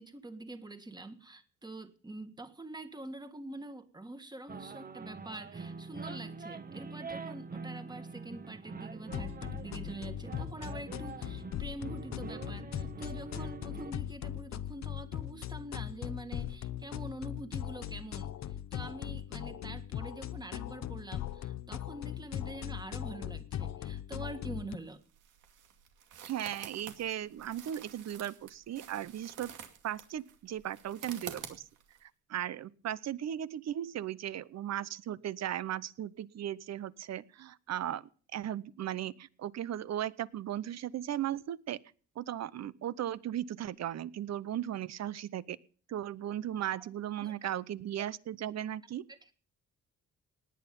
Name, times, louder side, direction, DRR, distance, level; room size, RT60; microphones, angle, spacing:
voice 1, 0.0-25.0 46.7-46.8 47.2-47.3 49.1-49.3, right 2 dB, 15° right, 9 dB, 1.7 m, -45 dB
sound 1, 4.5-13.9, right 4 dB, 30° right, 1.2 m, -44 dB
sound 2, 9.1-24.8, left 11 dB, 60° left, 0.9 m, -39 dB
sound 3, 24.8-32.0, right 9 dB, 90° right, 2.4 m, -49 dB
voice 2, 26.2-29.5 29.8-31.6 32.0-38.0 38.3-41.8 42.2-45.6 45.9-49.1, right 11 dB, 60° right, 18 dB, 0.8 m, -37 dB
18.5 x 9.3 x 5.4 m, 0.42 s
cardioid pair, 90°, 30 cm